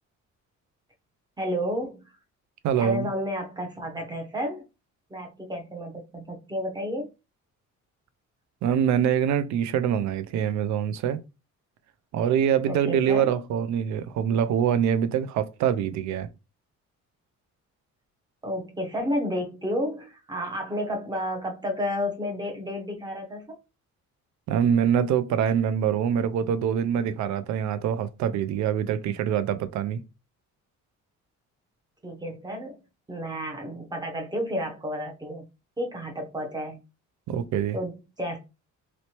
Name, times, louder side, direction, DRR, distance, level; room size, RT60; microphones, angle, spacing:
voice 1, 1.4-2.1 2.8-4.6 5.1-7.1 12.7-13.3 18.4-23.6 32.0-32.8 33.1-35.5 35.8-36.8 37.7-38.4, equal, 15° right, 0.7 m, -31 dB
voice 2, 2.6-3.1 8.6-11.2 12.1-16.3 24.5-30.0 37.3-37.8, right 8 dB, 70° right, 0.5 m, -24 dB
3.1 x 3.0 x 2.9 m
cardioid pair, 150°, 30 cm